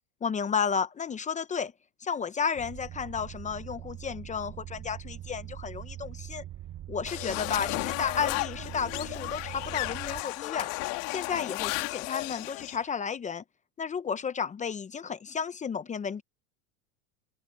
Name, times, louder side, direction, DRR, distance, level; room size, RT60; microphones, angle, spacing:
voice 1, 0.2-1.7 2.0-6.4 6.9-10.7 11.1-13.4 13.8-16.2, left 6 dB, 15° left, 0.8 m, -32 dB
sound 1, 2.6-10.2, right 12 dB, 35° right, 5.0 m, -42 dB
sound 2, 7.1-12.8, left 25 dB, 65° left, 2.1 m, -34 dB
open air
supercardioid pair, 135°, 42 cm